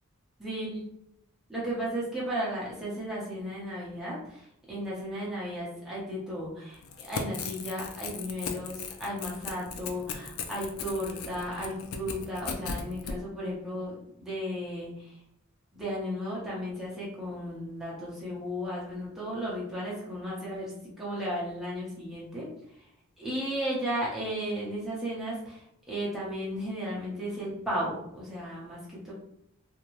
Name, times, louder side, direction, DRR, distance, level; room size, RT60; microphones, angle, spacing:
voice 1, 0.4-0.8 1.5-15.2 15.7-22.5 23.2-29.1, equal, ahead, -8 dB, 0.9 m, -34 dB
Crackle / Tearing, 6.8-13.2, left 5 dB, 70° left, 0.4 m, -37 dB
2.6 x 2.2 x 3.0 m, 0.75 s
head